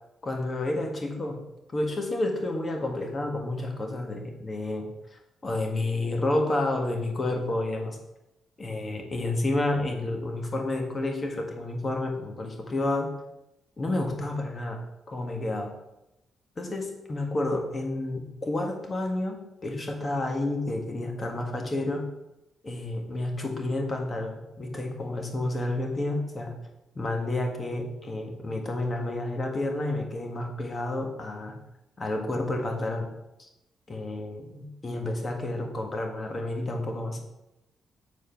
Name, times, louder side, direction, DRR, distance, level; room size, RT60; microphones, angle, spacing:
voice 1, 0.2-1.4 1.7-8.0 8.6-13.1 13.8-14.8 15.1-15.7 16.6-22.1 22.6-26.6 26.9-31.6 32.0-33.1 33.4-33.5 33.9-37.2, left 2 dB, 30° left, 3 dB, 1.6 m, -30 dB
7.4 x 4.6 x 5.8 m, 0.92 s
cardioid pair, 95°, 0 cm